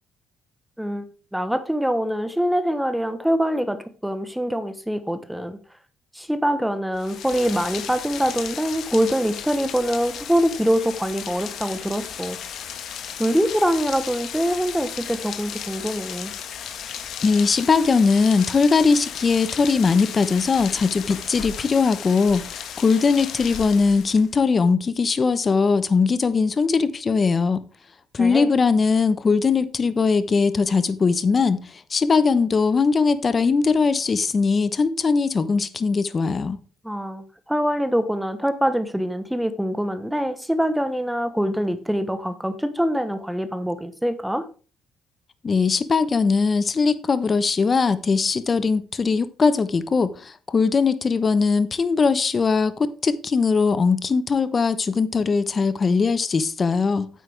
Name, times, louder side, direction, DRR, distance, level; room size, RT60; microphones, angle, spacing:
voice 1, 0.8-5.6 6.1-12.4 13.2-16.3 28.2-28.5 36.8-44.4, equal, 5° right, 1.0 m, -24 dB
Rain, 6.9-24.3, left 8 dB, 60° left, 1.4 m, -35 dB
voice 2, 17.2-27.6 28.1-36.6 45.4-57.1, left 4 dB, 30° left, 0.9 m, -20 dB
9.5 x 8.3 x 3.4 m
cardioid pair, 115°, 0 cm